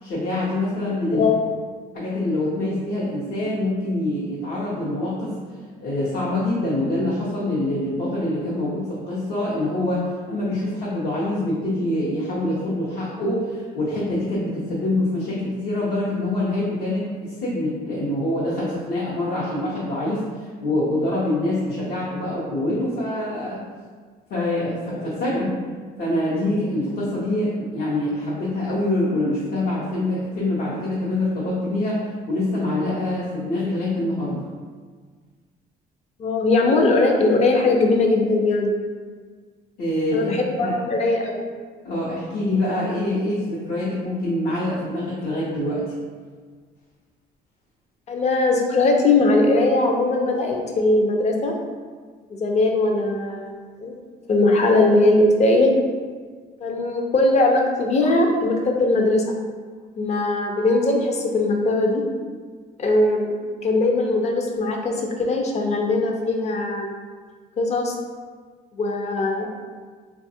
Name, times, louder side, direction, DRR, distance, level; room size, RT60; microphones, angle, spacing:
voice 1, 0.0-1.3 1.9-5.3 5.8-23.6 24.3-25.5 26.0-32.0 32.3-34.5 39.8-40.7 41.8-45.9, left 1 dB, 70° left, -8 dB, 0.9 m, -25 dB
voice 2, 36.2-38.7 40.1-41.5 48.1-51.6 52.4-53.5 53.8-53.9 54.3-55.7 56.6-59.2 60.0-62.0 62.8-63.3 63.6-66.9 67.6-67.9 68.8-69.5, left 2 dB, 40° left, 2 dB, 0.5 m, -20 dB
4.0 x 2.4 x 2.7 m, 1.5 s
cardioid pair, 110°, 17 cm